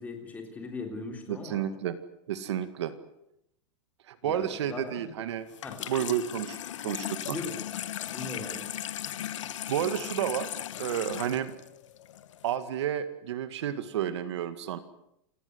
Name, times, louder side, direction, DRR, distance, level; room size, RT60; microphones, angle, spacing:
voice 1, 0.0-1.6 4.2-5.1 5.6-5.8 7.3-7.5 8.1-8.6, left 3 dB, 10° left, 3 dB, 3.6 m, -39 dB
voice 2, 1.3-2.0 2.3-2.9 4.1-5.5 5.9-7.4 9.7-10.5 10.8-11.5 12.4-14.8, right 10 dB, 65° right, 11 dB, 2.0 m, -31 dB
Water tap faucet / Sink (filling or washing), 5.5-12.5, left 11 dB, 90° left, 1.4 m, -37 dB
28.5 x 18.0 x 8.0 m, 0.78 s
supercardioid pair, 175°, 15 cm